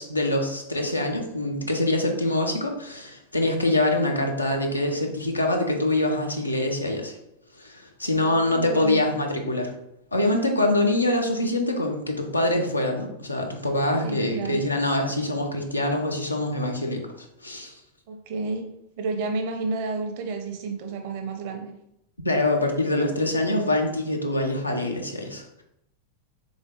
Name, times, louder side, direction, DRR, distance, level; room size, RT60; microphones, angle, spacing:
voice 1, 0.0-7.2 7.5-9.7 10.1-17.8 22.2-25.6, left 1 dB, 85° left, 2 dB, 0.7 m, -25 dB
voice 2, 8.0-9.0 14.0-14.6 18.1-21.7, right 3 dB, 50° right, 5 dB, 0.7 m, -31 dB
3.8 x 3.6 x 3.6 m, 0.81 s
figure-of-eight pair, 90°, 0 cm